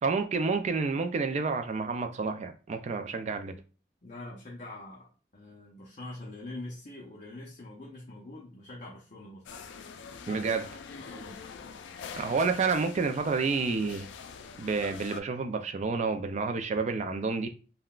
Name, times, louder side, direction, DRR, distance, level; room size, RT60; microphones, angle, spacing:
voice 1, 0.0-3.5 10.3-10.7 12.2-14.1 14.6-17.5, right 4 dB, 40° right, 0.3 m, -29 dB
voice 2, 4.0-9.5 10.9-11.4, left 2 dB, 40° left, 0.6 m, -44 dB
sound 1, 9.4-15.2, left 6 dB, 90° left, 0.3 m, -44 dB
3.6 x 2.1 x 2.3 m
head